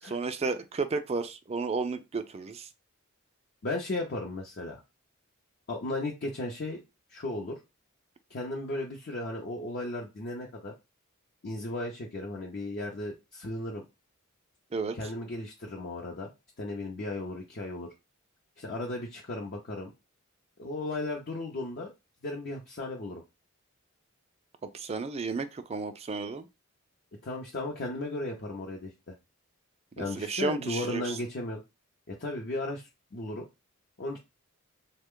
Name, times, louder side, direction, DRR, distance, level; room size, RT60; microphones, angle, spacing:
voice 1, 0.0-2.7 14.7-15.1 24.6-26.5 30.0-31.2, right 4 dB, 30° right, 0.4 m, -33 dB
voice 2, 3.6-4.8 5.7-6.8 7.1-7.6 8.3-10.7 11.4-13.8 15.0-16.3 16.6-17.9 18.6-19.9 20.6-21.9 22.2-23.2 27.2-29.1 30.0-31.6 32.1-33.4 34.0-34.2, left 2 dB, 50° left, 0.6 m, -35 dB
3.3 x 2.1 x 3.6 m
head